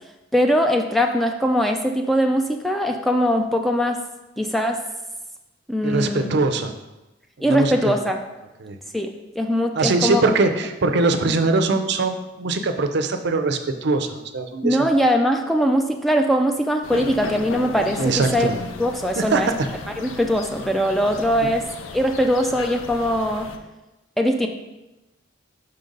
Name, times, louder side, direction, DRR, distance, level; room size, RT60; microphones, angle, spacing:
voice 1, 0.3-4.0 4.4-4.8 5.7-6.3 7.4-8.2 8.9-10.2 14.6-18.5 18.8-19.5 20.0-21.6 21.9-23.5 24.2-24.5, equal, ahead, 4 dB, 0.3 m, -21 dB
voice 2, 5.8-6.7 7.4-7.9 8.6-8.8 9.7-14.9 18.0-18.6 19.2-19.6 21.4-21.5, right 3 dB, 60° right, 7 dB, 0.5 m, -22 dB
sound 1, 16.8-23.6, left 3 dB, 85° left, 0.6 m, -35 dB
5.5 x 3.9 x 5.2 m, 1.0 s
head